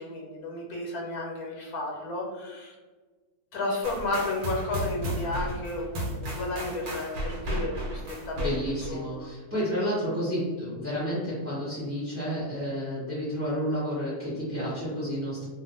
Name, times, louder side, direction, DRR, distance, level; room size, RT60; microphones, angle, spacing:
voice 1, 0.0-2.7 3.5-8.6 8.9-9.1, left 2 dB, 90° left, -1 dB, 1.2 m, -32 dB
sound 1, 3.8-9.0, equal, 90° right, 1.2 m, -34 dB
voice 2, 8.3-15.4, equal, 15° right, -12 dB, 0.6 m, -31 dB
2.5 x 2.5 x 2.6 m, 1.3 s
omnidirectional pair, 1.6 m